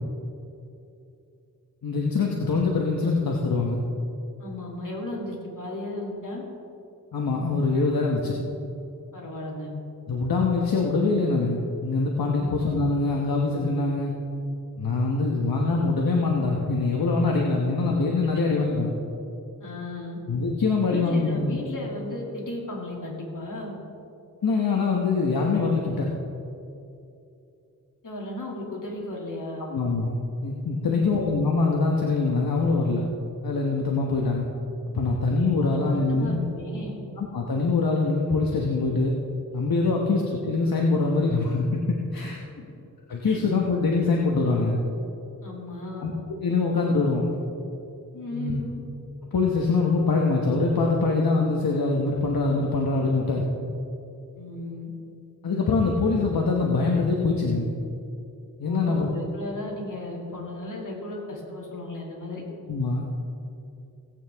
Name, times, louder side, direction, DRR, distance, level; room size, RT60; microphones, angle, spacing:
voice 1, 1.8-3.8 7.1-8.3 10.1-14.1 14.8-18.9 20.3-21.6 24.4-26.1 29.7-30.1 30.4-33.1 33.4-34.4 34.9-36.4 37.2-39.1 39.5-42.4 43.1-44.8 46.0-46.1 46.4-47.4 48.3-48.6 49.3-53.5 55.4-57.7 58.6-59.1 62.7-63.0, left 3 dB, 80° left, -1 dB, 1.2 m, -24 dB
voice 2, 4.4-6.4 9.1-9.7 12.3-12.5 19.6-20.2 20.9-23.8 28.0-29.6 30.8-31.1 35.6-35.8 36.1-37.0 39.9-40.1 43.2-43.4 45.4-46.1 48.1-48.8 54.3-54.9 58.6-62.4, left 1 dB, 60° left, -3 dB, 2.7 m, -35 dB
17.5 x 8.9 x 3.5 m, 2.7 s
wide cardioid pair, 70°, 35 cm